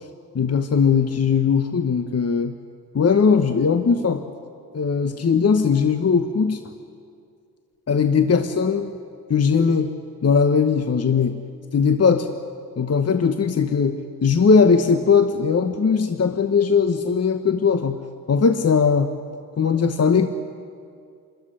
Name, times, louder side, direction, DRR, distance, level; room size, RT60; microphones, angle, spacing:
voice 1, 0.3-2.6 2.9-4.2 4.7-6.6 7.9-9.0 9.3-10.0 10.2-11.4 11.7-12.3 12.8-18.0 18.3-19.1 19.6-20.3, left 5 dB, 30° left, 9 dB, 1.2 m, -19 dB
27.0 x 13.5 x 9.9 m, 2.3 s
hypercardioid pair, 50°, 46 cm